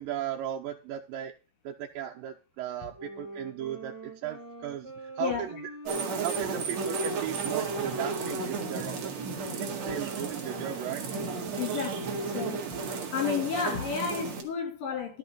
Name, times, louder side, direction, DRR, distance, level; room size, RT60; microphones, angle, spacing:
voice 1, 0.0-1.3 1.6-5.5 5.9-9.1 9.4-11.0, right 11 dB, 90° right, 2.5 m, -36 dB
sound 1, 2.9-12.6, right 1 dB, 5° right, 1.8 m, -42 dB
desert insects, 5.9-14.4, right 5 dB, 55° right, 2.8 m, -34 dB
voice 2, 11.6-12.6 13.1-15.2, left 6 dB, 70° left, 4.5 m, -32 dB
12.5 x 6.6 x 5.5 m
omnidirectional pair, 4.0 m